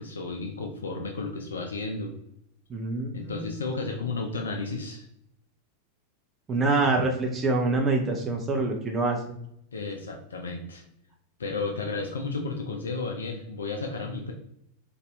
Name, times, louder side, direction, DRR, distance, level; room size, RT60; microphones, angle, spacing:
voice 1, 0.0-2.1 3.1-5.1 6.7-6.9 9.7-10.8 11.4-14.3, left 3 dB, 70° left, 3 dB, 0.4 m, -33 dB
voice 2, 2.7-3.1 3.3-3.5 6.5-9.2, right 3 dB, 20° right, 1 dB, 0.6 m, -25 dB
4.1 x 2.6 x 3.2 m, 0.74 s
figure-of-eight pair, 90°, 0 cm